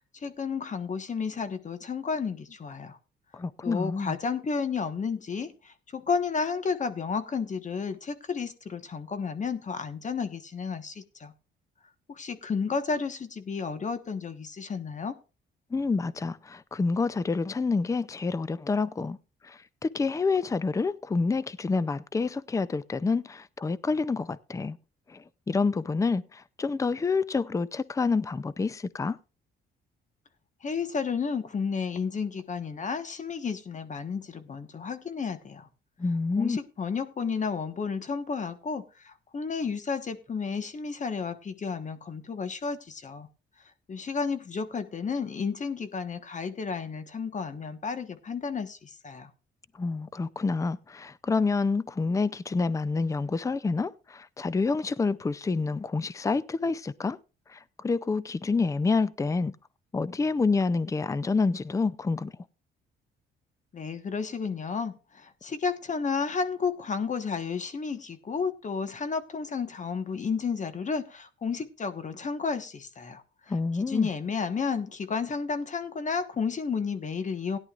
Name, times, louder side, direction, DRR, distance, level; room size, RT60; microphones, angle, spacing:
voice 1, 0.1-3.0 3.6-11.3 12.1-15.1 30.6-35.7 36.4-43.3 43.9-49.3 63.7-73.2 73.9-77.6, left 5 dB, 40° left, 1.3 m, -32 dB
voice 2, 3.3-4.2 15.7-19.2 19.4-24.8 25.1-29.2 36.0-36.6 49.8-57.2 57.5-59.5 59.9-62.3 73.5-74.1, left 4 dB, 15° left, 0.5 m, -28 dB
17.0 x 11.0 x 2.5 m
cardioid pair, 90°, 20 cm